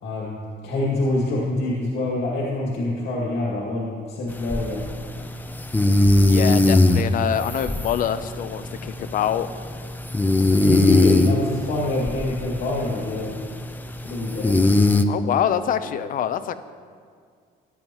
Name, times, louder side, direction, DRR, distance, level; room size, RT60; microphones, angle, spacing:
voice 1, 0.0-4.9 10.6-13.4 14.0-14.6, left 2 dB, 80° left, -4 dB, 2.3 m, -25 dB
sound 1, 4.3-15.0, left 2 dB, 10° left, 0.5 m, -21 dB
voice 2, 6.3-9.5 15.1-16.5, left 9 dB, 55° left, 12 dB, 0.6 m, -25 dB
15.5 x 11.0 x 3.1 m, 2.1 s
cardioid pair, 110°, 17 cm